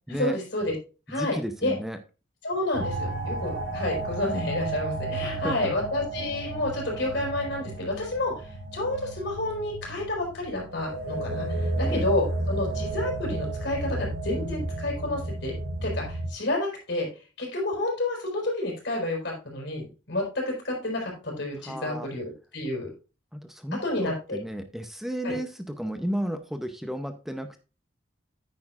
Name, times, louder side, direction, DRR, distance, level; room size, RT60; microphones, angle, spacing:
voice 1, 0.1-0.7 1.1-1.4 1.6-1.7 2.4-17.1 17.4-22.9 23.8-24.4 25.2-25.4, left 2 dB, 60° left, -1 dB, 4.7 m, -30 dB
voice 2, 1.1-2.0 5.2-5.8 11.8-12.0 21.6-22.1 23.3-27.6, equal, ahead, 7 dB, 0.6 m, -33 dB
sound 1, 2.7-16.3, right 2 dB, 85° right, 4.0 m, -32 dB
9.6 x 9.3 x 2.5 m, 0.32 s
head